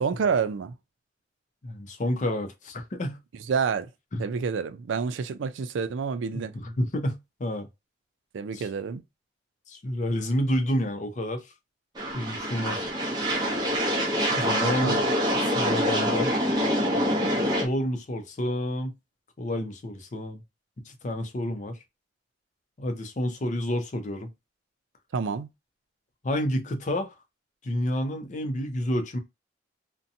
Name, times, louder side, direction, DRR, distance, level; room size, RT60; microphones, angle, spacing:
voice 1, 0.0-0.7 3.5-3.9 4.2-6.5 8.3-9.0 14.8-15.1 25.1-25.5, right 5 dB, 85° right, 0.4 m, -28 dB
voice 2, 1.6-3.2 4.1-4.2 6.3-7.7 8.5-8.7 9.7-11.4 12.1-12.8 13.3-13.4 14.3-15.0 15.4-16.3 17.3-18.9 19.4-20.4 20.9-21.8 22.8-24.3 26.2-27.1 27.6-29.2, left 1 dB, 40° left, 0.5 m, -29 dB
sound 1, 12.0-17.7, equal, 25° right, 0.7 m, -25 dB
2.6 x 2.1 x 2.6 m
head